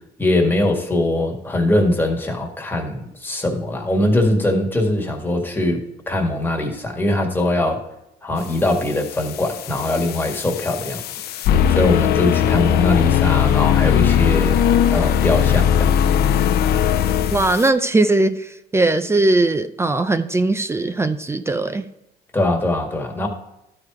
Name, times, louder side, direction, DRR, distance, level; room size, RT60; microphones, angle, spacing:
voice 1, 0.2-5.8 6.1-7.8 8.2-11.0 11.7-14.6 14.9-15.9 22.3-23.3, left 1 dB, 10° left, 1 dB, 1.8 m, -21 dB
sound 1, 9.1-17.7, left 9 dB, 70° left, 0.6 m, -19 dB
voice 2, 17.3-21.9, right 2 dB, 15° right, 10 dB, 0.5 m, -19 dB
12.0 x 4.9 x 4.8 m, 0.89 s
cardioid pair, 110°, 17 cm